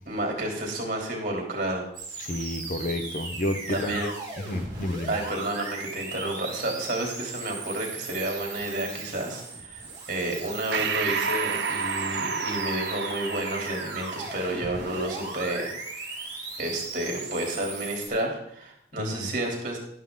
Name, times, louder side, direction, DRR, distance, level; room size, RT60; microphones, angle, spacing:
voice 1, 0.1-1.8 3.7-4.1 5.1-15.7 16.1-16.3 16.6-19.8, right 1 dB, 45° right, 0 dB, 3.3 m, -31 dB
sound 1, 1.9-18.1, right 3 dB, 20° right, 3.0 m, -38 dB
voice 2, 2.2-5.1 19.0-19.3, left 1 dB, 45° left, 8 dB, 0.9 m, -31 dB
Breathing, 10.7-15.6, right 5 dB, 85° right, 0.8 m, -31 dB
12.0 x 11.0 x 3.9 m, 0.67 s
head